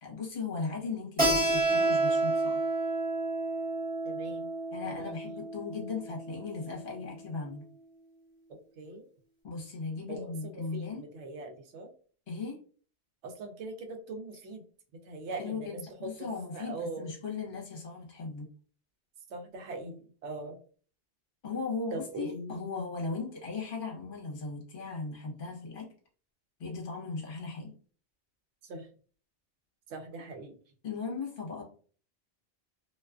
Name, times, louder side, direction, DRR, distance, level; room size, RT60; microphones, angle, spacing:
voice 1, 0.0-2.6 4.7-7.7 9.4-11.0 12.3-12.6 15.3-18.5 21.4-25.9 26.6-27.8 30.8-31.6, left 4 dB, 55° left, -1 dB, 1.0 m, -37 dB
Keyboard (musical), 1.2-6.5, right 2 dB, 10° right, 1.0 m, -29 dB
voice 2, 4.0-4.5 4.9-5.2 8.8-9.0 10.1-11.9 13.2-14.6 15.0-17.1 19.3-20.6 21.9-22.6 28.7-28.9 29.9-30.5, right 2 dB, 80° right, 4 dB, 0.9 m, -41 dB
2.4 x 2.3 x 2.3 m, 0.42 s
omnidirectional pair, 1.2 m